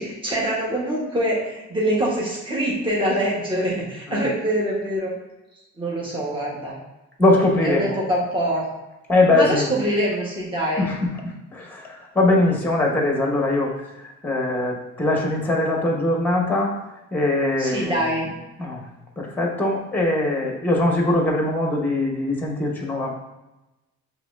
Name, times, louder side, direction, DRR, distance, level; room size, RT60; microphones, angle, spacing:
voice 1, 0.0-5.1 5.8-6.8 7.6-8.6 9.3-10.9 17.6-18.3, right 1 dB, 15° right, -4 dB, 1.3 m, -24 dB
voice 2, 7.2-8.0 9.1-9.7 10.8-11.0 11.5-13.7 14.2-16.7 17.1-18.1 18.6-18.8 19.2-23.1, left 2 dB, 5° left, 0 dB, 1.1 m, -21 dB
5.8 x 3.2 x 2.6 m, 1.0 s
cardioid pair, 90°, 30 cm